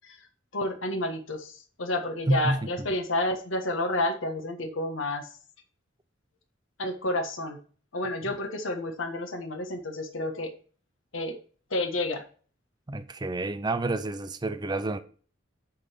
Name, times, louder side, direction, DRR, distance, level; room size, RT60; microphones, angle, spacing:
voice 1, 0.5-5.3 6.8-7.6 7.9-10.5 11.1-11.4 11.7-12.2, left 1 dB, 85° left, 1.4 m, -30 dB
voice 2, 2.3-2.9 12.9-15.0, right 2 dB, 20° right, 0.5 m, -29 dB
8.5 x 4.0 x 6.4 m
head